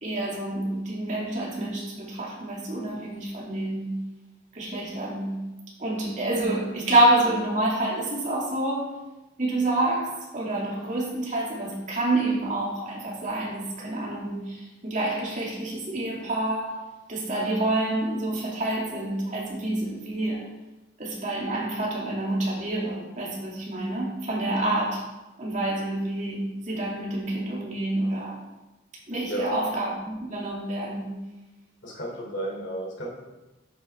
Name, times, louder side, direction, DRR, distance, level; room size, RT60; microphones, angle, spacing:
voice 1, 0.0-4.0 4.5-5.4 5.8-9.0 9.4-20.5 21.0-25.1 25.4-28.4 29.1-31.2, right 1 dB, 40° right, -4 dB, 2.6 m, -28 dB
voice 2, 31.8-33.3, right 1 dB, 70° left, -2 dB, 3.0 m, -32 dB
9.1 x 8.4 x 3.6 m, 1.1 s
head